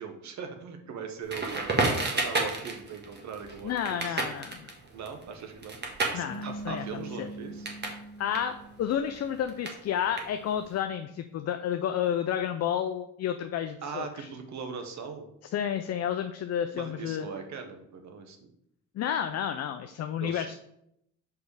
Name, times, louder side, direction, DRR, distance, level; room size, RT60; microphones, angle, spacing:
voice 1, 0.0-4.2 4.9-5.8 6.1-7.7 13.8-15.3 16.7-18.5 20.2-20.5, right 6 dB, 60° right, 5 dB, 1.2 m, -40 dB
Crackle, 1.3-8.0 8.3-10.7, right 3 dB, 30° right, 1.5 m, -32 dB
voice 2, 3.6-4.7 6.1-6.8 7.2-7.3 8.2-14.3 15.5-17.3 18.9-20.5, left 9 dB, 50° left, 7 dB, 0.5 m, -31 dB
sound 1, 6.3-9.6, right 1 dB, 20° left, 1.0 m, -43 dB
5.3 x 4.6 x 4.8 m, 0.76 s
cardioid pair, 90°, 32 cm